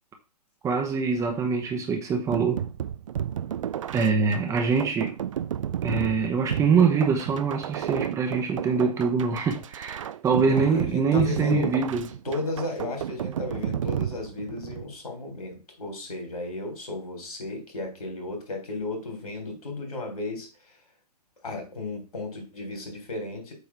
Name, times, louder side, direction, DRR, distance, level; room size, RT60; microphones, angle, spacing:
voice 1, 0.6-2.6 3.9-5.2 5.8-12.1, right 5 dB, 15° right, 1.0 m, -24 dB
sound 1, 2.3-14.9, right 10 dB, 50° right, 0.5 m, -32 dB
voice 2, 10.4-11.8 12.2-20.5 21.4-23.5, left 2 dB, 65° left, 3.8 m, -34 dB
8.3 x 3.5 x 5.9 m
figure-of-eight pair, 115°, 20 cm